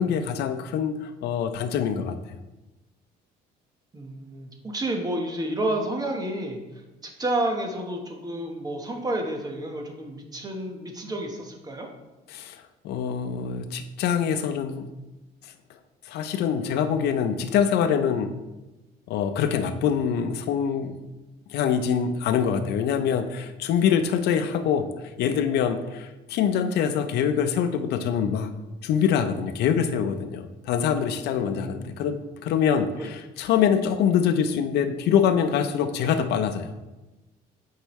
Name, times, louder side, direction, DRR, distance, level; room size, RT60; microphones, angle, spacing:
voice 1, 0.0-2.2 12.3-14.9 15.4-15.5 16.0-18.4 19.1-21.0 21.5-24.9 25.2-28.5 28.8-36.7, left 7 dB, 75° left, 9 dB, 0.6 m, -24 dB
voice 2, 3.9-6.6 7.0-11.9 31.3-32.0 33.0-33.1, right 1 dB, 20° right, 2 dB, 1.1 m, -30 dB
8.0 x 4.6 x 3.1 m, 1.1 s
cardioid pair, 110°, 17 cm